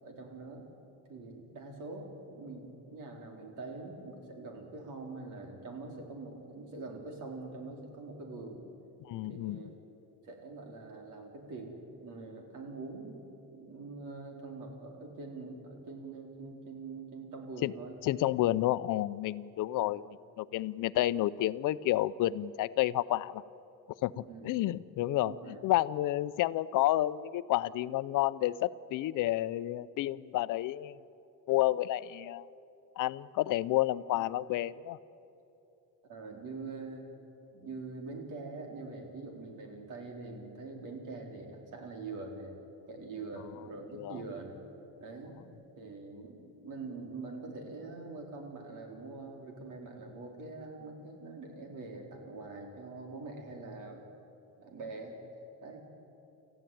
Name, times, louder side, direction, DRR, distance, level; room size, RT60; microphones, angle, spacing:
voice 1, 0.0-0.6 1.1-8.6 9.2-9.7 10.1-13.2 13.5-18.0 19.8-19.9 24.2-24.5 25.2-25.6 34.2-34.3 36.1-37.1 37.5-42.5 42.9-44.6 45.0-45.4 45.8-54.0 54.6-55.2 55.6-55.9, right 3 dB, 65° right, 1 dB, 4.4 m, -44 dB
voice 2, 9.0-9.6 17.6-17.7 18.0-20.0 20.4-23.4 24.0-25.3 25.6-31.0 31.5-32.5 33.0-35.0 44.0-44.1, left 15 dB, 65° left, 16 dB, 0.6 m, -30 dB
27.0 x 15.0 x 9.3 m, 2.8 s
cardioid pair, 165°, 33 cm